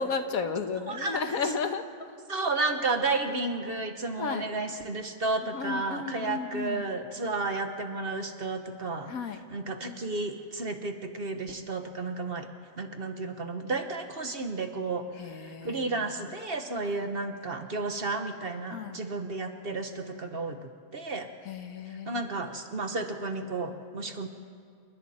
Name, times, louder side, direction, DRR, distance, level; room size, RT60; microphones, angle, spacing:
voice 1, 0.0-1.8 4.2-4.5 5.5-6.8 9.1-9.4 15.1-16.4 16.8-17.1 18.7-19.1 21.4-22.3, left 5 dB, 75° left, 7 dB, 1.6 m, -34 dB
voice 2, 0.9-1.5 2.3-12.5 12.8-15.1 15.4-21.3 21.9-24.3, right 3 dB, 45° right, 6 dB, 1.3 m, -32 dB
28.5 x 21.5 x 4.3 m, 2.2 s
omnidirectional pair, 1.5 m